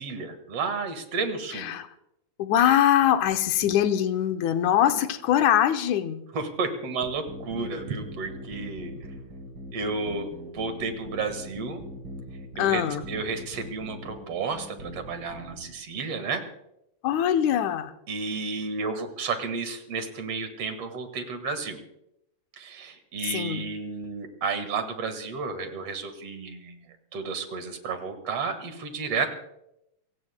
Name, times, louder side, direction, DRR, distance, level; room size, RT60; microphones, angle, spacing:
voice 1, 0.0-1.7 4.9-5.0 6.3-8.9 9.7-11.8 12.6-12.8 13.1-16.4 18.1-21.8 22.6-29.3, right 4 dB, 60° right, 7 dB, 2.6 m, -32 dB
voice 2, 1.5-1.9 2.4-6.3 12.6-13.0 17.0-17.9 23.2-23.7, left 10 dB, 85° left, 8 dB, 2.3 m, -23 dB
sound 1, 7.0-15.7, equal, 45° right, 3.9 m, -41 dB
28.0 x 17.0 x 2.2 m, 0.82 s
omnidirectional pair, 3.4 m